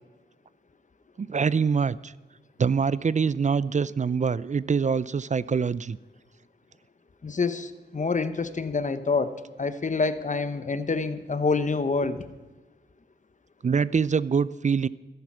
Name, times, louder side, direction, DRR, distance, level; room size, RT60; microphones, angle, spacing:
voice 1, 1.2-2.1 2.6-6.0 13.6-14.9, right 5 dB, 40° right, 19 dB, 0.4 m, -24 dB
voice 2, 7.2-12.2, left 4 dB, 40° left, 12 dB, 1.0 m, -27 dB
13.5 x 11.0 x 5.9 m, 1.2 s
cardioid pair, 60°, 19 cm